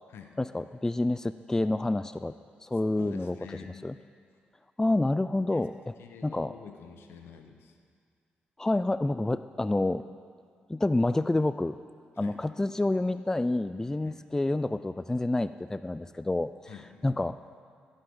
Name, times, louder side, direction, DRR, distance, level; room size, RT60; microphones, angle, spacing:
voice 1, 0.4-2.3 2.6-3.3 3.8-3.9 4.8-5.9 6.2-6.5 8.6-10.0 10.7-11.8 12.2-16.5 17.0-17.4, left 2 dB, 15° left, 13 dB, 0.3 m, -28 dB
voice 2, 3.0-3.8 5.5-5.6 6.0-7.7 12.2-12.4 14.0-14.2 16.7-16.9, left 7 dB, 75° left, 5 dB, 1.0 m, -47 dB
16.0 x 8.9 x 3.9 m, 2.1 s
supercardioid pair, 55°, 4 cm